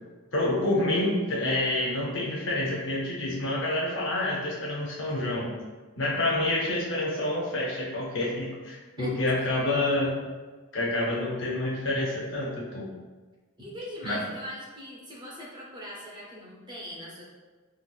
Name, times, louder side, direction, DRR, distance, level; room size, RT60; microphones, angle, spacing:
voice 1, 0.3-5.5 6.0-10.2 10.7-12.9 14.0-14.2, left 1 dB, 60° left, -5 dB, 0.6 m, -28 dB
voice 2, 8.8-9.6 13.6-17.3, equal, 20° right, -4 dB, 0.5 m, -41 dB
3.9 x 2.2 x 2.3 m, 1.4 s
head